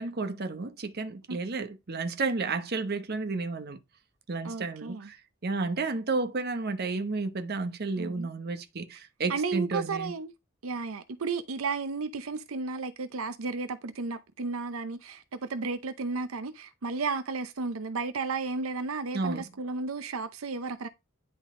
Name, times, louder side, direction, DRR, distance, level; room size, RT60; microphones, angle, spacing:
voice 1, 0.0-3.8 4.3-10.1 19.1-19.5, right 3 dB, 50° right, 0.9 m, -32 dB
voice 2, 4.4-5.1 8.0-8.3 9.3-10.3 10.6-20.9, right 4 dB, 80° right, 0.7 m, -33 dB
10.5 x 4.0 x 3.7 m
head